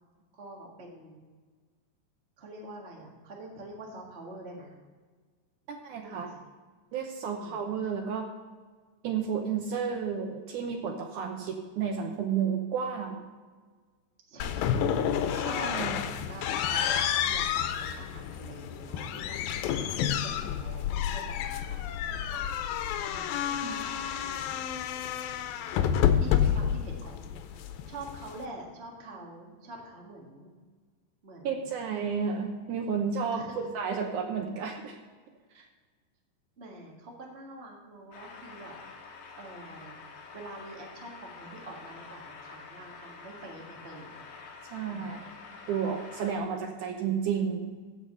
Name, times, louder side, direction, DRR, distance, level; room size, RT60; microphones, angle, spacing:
voice 1, 0.3-1.2 2.4-4.7 6.0-6.3 7.3-7.6 14.3-14.8 15.2-15.9 16.1-21.8 22.3-22.5 23.0-23.5 24.2-24.4 25.7-30.5 31.2-31.7 33.3-33.6 36.6-38.7 39.4-44.3 44.9-45.2, right 2 dB, 35° right, -1 dB, 1.0 m, -46 dB
voice 2, 5.7-6.3 6.9-8.3 9.0-13.2 15.3-16.0 22.1-22.3 23.5-23.8 31.4-35.0 35.6-35.7 44.7-45.3 45.7-47.7, right 6 dB, 70° right, 3 dB, 2.0 m, -32 dB
sound 1, 14.4-28.5, left 9 dB, 90° left, 2.5 m, -30 dB
sound 2, 38.1-46.4, left 4 dB, 65° left, 2.6 m, -47 dB
14.5 x 5.1 x 5.5 m, 1.5 s
omnidirectional pair, 4.1 m